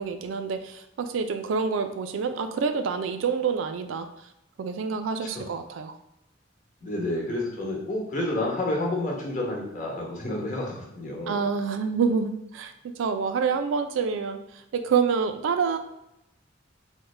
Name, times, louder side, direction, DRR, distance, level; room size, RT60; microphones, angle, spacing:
voice 1, 0.0-4.1 4.6-5.9 11.3-12.7 13.0-14.4 14.7-15.8, right 5 dB, 85° right, 8 dB, 0.3 m, -27 dB
voice 2, 6.8-11.4, left 1 dB, 40° left, -2 dB, 0.9 m, -30 dB
3.6 x 2.1 x 3.1 m, 0.82 s
head